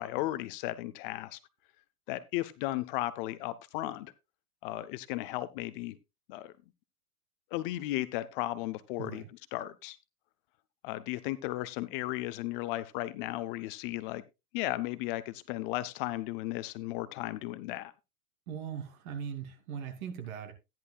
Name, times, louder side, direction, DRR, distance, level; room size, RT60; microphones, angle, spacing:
voice 1, 0.0-1.4 2.1-4.1 4.6-6.0 6.3-6.5 7.5-9.2 9.5-10.0 10.8-14.2 14.5-17.9, left 16 dB, 40° left, 0.5 m, -35 dB
voice 2, 9.0-9.3 18.5-20.5, right 8 dB, 65° right, 2.7 m, -39 dB
13.5 x 10.5 x 2.3 m
supercardioid pair, 135°, 45 cm